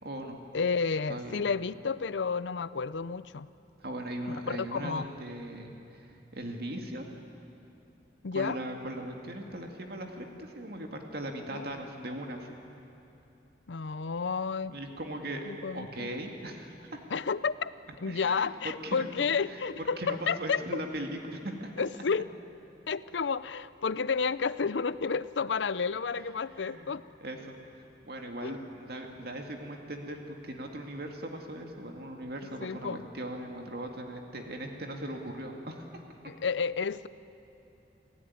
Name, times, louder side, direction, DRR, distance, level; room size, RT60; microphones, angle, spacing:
voice 1, 0.0-0.4 1.1-1.4 3.8-6.1 6.3-7.1 8.3-12.5 14.7-15.4 15.7-17.0 18.1-18.5 18.8-19.0 19.5-19.6 20.0-21.7 26.6-26.9 27.2-27.5 28.0-36.0, right 1 dB, 60° right, 3 dB, 2.2 m, -39 dB
voice 2, 0.5-3.5 4.3-5.1 8.2-8.6 11.5-11.7 13.7-14.7 15.5-16.1 17.1-17.7 18.0-20.8 21.8-22.3 22.9-27.0 28.4-28.6 32.6-33.1 36.3-37.1, left 5 dB, 85° left, 16 dB, 0.6 m, -31 dB
28.0 x 16.5 x 9.5 m, 2.8 s
head